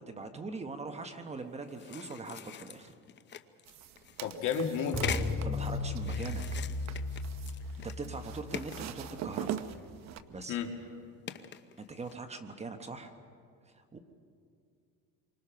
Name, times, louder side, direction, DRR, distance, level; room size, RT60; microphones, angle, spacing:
voice 1, 0.0-2.9 5.4-6.4 7.8-9.6 10.3-10.6 11.8-13.1 13.7-14.0, right 3 dB, 20° right, 6 dB, 1.2 m, -41 dB
sound 1, 1.7-5.4 6.0-8.2 8.5-9.9 10.3-10.4 11.3-12.1, left 9 dB, 30° left, 0.8 m, -43 dB
sound 2, 3.7-10.2, right 10 dB, 50° right, 1.0 m, -43 dB
voice 2, 4.2-5.2 10.5-10.7, left 6 dB, 60° left, 3 dB, 2.5 m, -32 dB
sound 3, 4.9-9.4, left 2 dB, 10° left, 3.2 m, -36 dB
28.0 x 24.5 x 5.9 m, 2.3 s
cardioid pair, 135°, 34 cm